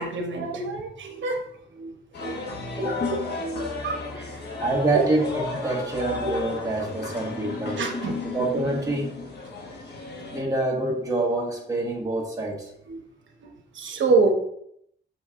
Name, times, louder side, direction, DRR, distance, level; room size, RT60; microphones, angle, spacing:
voice 1, 0.0-1.4 1.7-1.9 2.2-2.4 2.8-4.6 4.9-5.0 7.8-8.2 12.9-13.0 13.7-14.3, right 3 dB, 70° right, 3 dB, 1.0 m, -27 dB
sound 1, 2.1-10.4, left 3 dB, 55° left, 1.2 m, -33 dB
voice 2, 4.6-7.8 8.2-9.1 10.3-12.7, right 2 dB, 15° right, -2 dB, 1.4 m, -26 dB
6.3 x 5.2 x 3.6 m, 0.72 s
wide cardioid pair, 170°, 20 cm